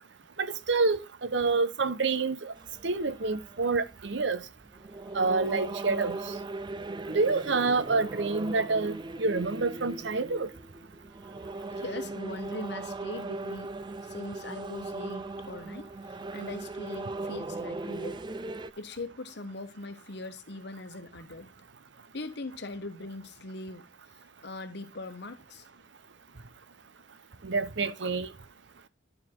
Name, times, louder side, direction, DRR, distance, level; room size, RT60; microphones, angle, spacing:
voice 1, 0.4-2.5 2.8-4.4 5.1-6.2 7.1-10.5 27.4-28.3, right 3 dB, 65° right, 0.8 m, -27 dB
sound 1, 2.6-18.7, right 2 dB, 25° right, 0.4 m, -38 dB
voice 2, 11.7-13.7 14.0-18.2 18.8-21.5 22.1-23.9 24.4-25.7, left 2 dB, 60° left, 1.1 m, -41 dB
11.0 x 4.8 x 3.8 m
head